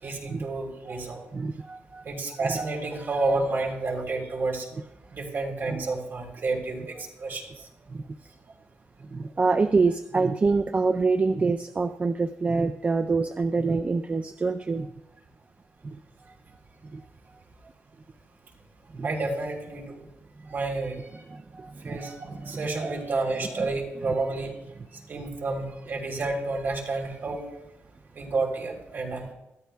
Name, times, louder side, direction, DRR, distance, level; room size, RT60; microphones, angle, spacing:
voice 1, 0.0-1.2 2.0-4.7 5.1-7.7 19.0-20.0 20.5-21.2 21.8-24.6 25.1-27.4 28.1-29.3, right 3 dB, 45° right, 1 dB, 3.5 m, -30 dB
voice 2, 1.3-2.0 2.4-2.6 5.7-5.8 7.9-8.0 9.1-14.9 15.8-16.0 16.9-17.0 18.9-19.1 20.4-20.5 21.3-22.0 22.3-22.7 25.1-25.2, right 4 dB, 30° right, 9 dB, 0.4 m, -26 dB
25.5 x 13.5 x 2.3 m, 0.90 s
cardioid pair, 125°, 5 cm